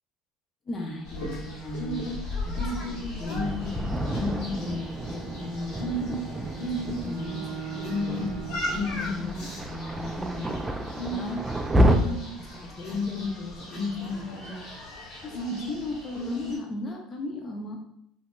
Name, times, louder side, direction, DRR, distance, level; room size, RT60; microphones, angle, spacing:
voice 1, 0.7-3.8 4.2-6.1 6.5-11.5 11.8-14.6 15.2-17.8, left 1 dB, 35° left, 1 dB, 0.8 m, -37 dB
sound 1, 1.1-16.5, left 2 dB, 65° left, 1.4 m, -33 dB
Thunder, 3.3-12.0, right 1 dB, 15° right, 0.3 m, -30 dB
Bowed string instrument, 4.1-8.9, right 6 dB, 60° right, 0.6 m, -41 dB
2.8 x 2.7 x 2.2 m, 0.72 s
supercardioid pair, 80°, 0 cm